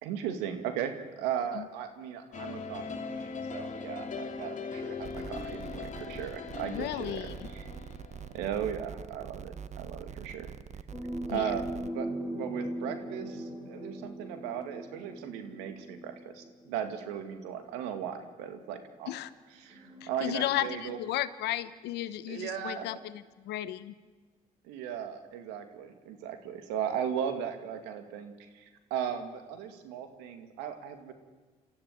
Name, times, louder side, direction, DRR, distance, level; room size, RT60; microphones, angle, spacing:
voice 1, 0.0-7.6 8.3-10.5 11.3-19.1 19.6-21.0 22.3-22.9 24.7-31.1, right 8 dB, 90° right, 7 dB, 2.4 m, -37 dB
sound 1, 2.3-8.5, left 5 dB, 50° left, 2.4 m, -40 dB
sound 2, 5.0-11.9, right 7 dB, 40° right, 1.0 m, -44 dB
voice 2, 6.7-7.3 11.3-11.5 19.1-19.3 20.0-23.9, left 14 dB, 75° left, 14 dB, 1.1 m, -34 dB
sound 3, 10.9-16.8 17.7-17.8 19.6-20.7, right 1 dB, 15° right, 4.0 m, -40 dB
28.0 x 13.5 x 9.1 m, 1.3 s
supercardioid pair, 70°, 17 cm